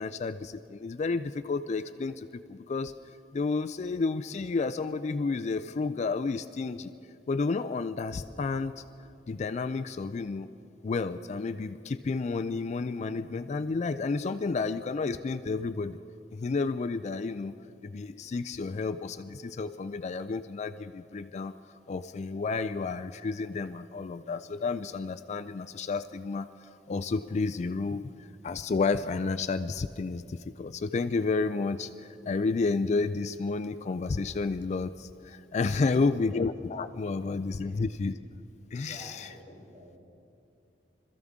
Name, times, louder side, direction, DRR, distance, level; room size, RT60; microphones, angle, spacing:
voice 1, 0.0-2.9 3.3-6.9 7.3-8.7 9.3-10.5 10.8-16.0 16.3-17.5 17.8-21.5 21.9-26.5 26.9-28.1 28.4-38.1 38.7-39.3, left 4 dB, 40° left, 10 dB, 0.4 m, -31 dB
voice 2, 35.7-36.3 37.2-37.3 37.5-37.7 38.8-40.0, equal, 20° right, -4 dB, 3.2 m, -49 dB
25.5 x 14.5 x 3.6 m, 2.7 s
head